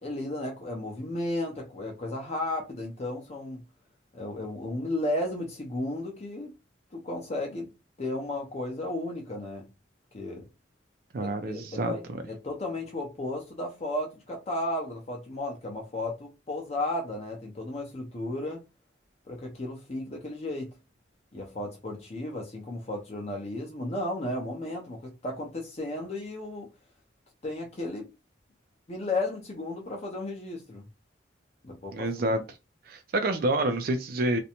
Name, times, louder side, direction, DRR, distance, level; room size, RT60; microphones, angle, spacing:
voice 1, 0.0-3.6 4.1-6.5 6.9-7.7 8.0-9.7 10.1-10.5 11.2-18.6 19.3-20.7 21.3-26.7 27.4-28.1 28.9-30.8 31.6-32.3, left 1 dB, 35° left, 0.6 m, -34 dB
voice 2, 11.1-11.9 31.9-32.4 32.9-34.4, right 2 dB, 55° right, 0.4 m, -27 dB
2.5 x 2.1 x 2.8 m
head